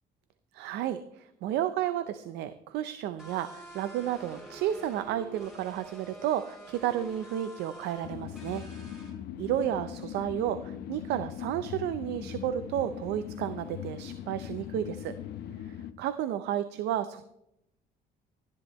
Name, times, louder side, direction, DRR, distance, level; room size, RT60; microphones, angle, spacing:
voice 1, 0.5-8.6 9.4-15.1 16.0-17.2, right 11 dB, 85° right, 12 dB, 0.6 m, -32 dB
sound 1, 3.2-9.1, right 1 dB, ahead, 4.1 m, -48 dB
sound 2, 8.0-15.9, left 10 dB, 75° left, 0.8 m, -40 dB
12.5 x 10.5 x 3.1 m, 0.81 s
cardioid pair, 110°, 17 cm